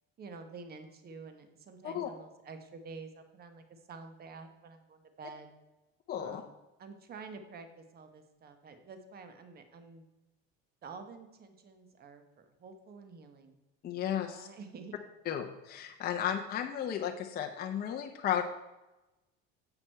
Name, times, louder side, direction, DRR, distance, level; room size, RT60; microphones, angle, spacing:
voice 1, 0.2-5.5 6.2-6.5 6.8-10.0 10.8-13.6 14.3-14.9, right 4 dB, 30° right, 8 dB, 1.0 m, -49 dB
voice 2, 6.1-6.4 13.8-14.5 15.3-18.4, left 9 dB, 30° left, 3 dB, 0.6 m, -34 dB
7.9 x 5.9 x 4.4 m, 1.0 s
cardioid pair, 125°, 30 cm